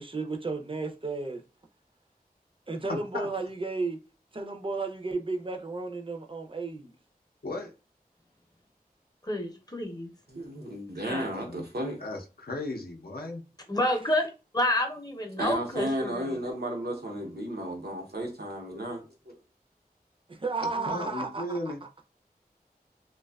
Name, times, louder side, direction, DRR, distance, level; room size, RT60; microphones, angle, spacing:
voice 1, 0.0-1.4 2.7-4.0 4.3-7.0 20.3-21.6, right 3 dB, 35° right, 0.4 m, -33 dB
voice 2, 2.9-3.3 7.4-7.7 11.3-11.7 12.0-13.4 20.9-21.8, left 2 dB, 75° left, 0.5 m, -36 dB
voice 3, 9.2-10.1 11.1-11.2 13.7-14.2 14.5-16.4 20.8-21.1, left 1 dB, 25° left, 0.6 m, -29 dB
voice 4, 10.3-12.0 15.4-19.4, equal, 90° right, 0.7 m, -33 dB
2.5 x 2.2 x 2.2 m
wide cardioid pair, 40°, 16 cm